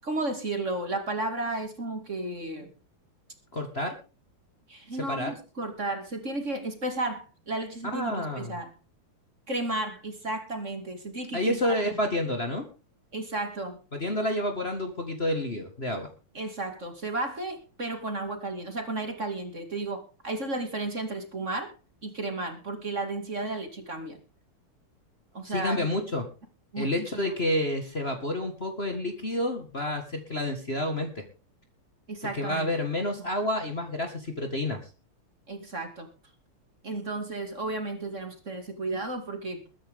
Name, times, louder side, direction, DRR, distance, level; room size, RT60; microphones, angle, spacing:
voice 1, 0.0-2.7 4.7-8.7 9.5-12.0 13.1-13.8 16.3-21.7 22.0-24.2 25.3-25.8 26.7-27.4 32.1-32.7 35.5-36.1 36.8-39.6, right 2 dB, 35° right, 5 dB, 2.7 m, -33 dB
voice 2, 3.5-3.9 5.1-5.3 7.9-8.6 11.3-12.7 13.9-16.1 25.4-26.2 26.8-31.2 32.3-34.8, left 1 dB, 30° left, 4 dB, 2.0 m, -29 dB
21.5 x 10.0 x 3.7 m, 0.34 s
omnidirectional pair, 2.4 m